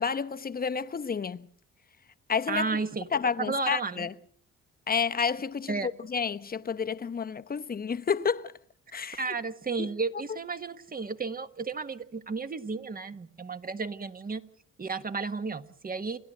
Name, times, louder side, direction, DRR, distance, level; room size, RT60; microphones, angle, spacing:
voice 1, 0.0-1.5 2.3-2.7 3.1-4.2 4.9-8.5 8.9-9.2 9.8-9.9, left 6 dB, 30° left, 0.9 m, -30 dB
voice 2, 2.5-3.1 3.4-4.1 5.7-5.9 9.2-14.4 14.8-16.2, right 4 dB, 30° right, 1.5 m, -33 dB
28.5 x 12.5 x 7.8 m
cardioid pair, 90°, 30 cm